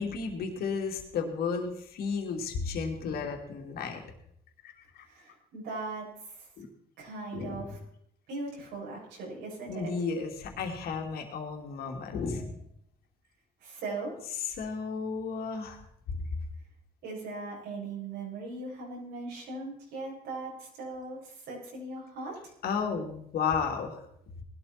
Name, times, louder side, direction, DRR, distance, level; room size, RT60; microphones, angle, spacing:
voice 1, 0.0-4.0 4.6-5.1 6.6-6.7 7.3-7.7 9.7-12.6 14.5-15.8 22.6-24.0, left 5 dB, 65° left, 2 dB, 3.0 m, -33 dB
voice 2, 5.1-6.1 6.3-6.5 7.0-7.8 8.3-9.9 13.6-14.1 17.0-22.5, right 3 dB, 90° right, -5 dB, 6.9 m, -39 dB
19.5 x 12.0 x 4.4 m, 0.71 s
cardioid pair, 110°, 17 cm